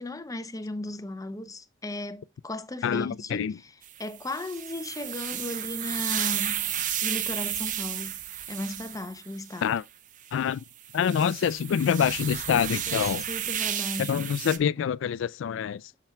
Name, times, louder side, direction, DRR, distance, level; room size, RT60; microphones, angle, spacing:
voice 1, 0.0-3.7 4.0-6.7 7.0-8.2 8.5-9.7 12.9-14.3, left 1 dB, 15° left, 0.6 m, -36 dB
voice 2, 2.8-3.5 9.6-9.8 10.3-10.6 10.9-13.2 14.0-15.8, left 8 dB, 65° left, 0.3 m, -26 dB
sound 1, 3.8-9.7 10.3-10.4 10.8-14.6, right 10 dB, 40° right, 0.6 m, -32 dB
7.4 x 7.0 x 2.2 m
head